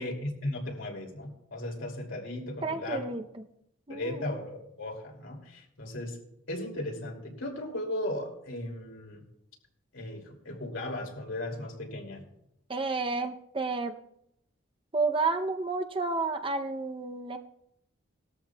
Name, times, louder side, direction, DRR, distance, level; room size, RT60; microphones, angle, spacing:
voice 1, 0.0-3.0 3.9-6.2 6.5-9.2 9.9-12.2, left 1 dB, 70° left, 0 dB, 2.8 m, -36 dB
voice 2, 2.6-3.2 3.9-4.3 12.7-14.0 14.9-17.4, right 3 dB, 25° right, 6 dB, 0.6 m, -31 dB
19.0 x 13.0 x 2.3 m, 0.79 s
head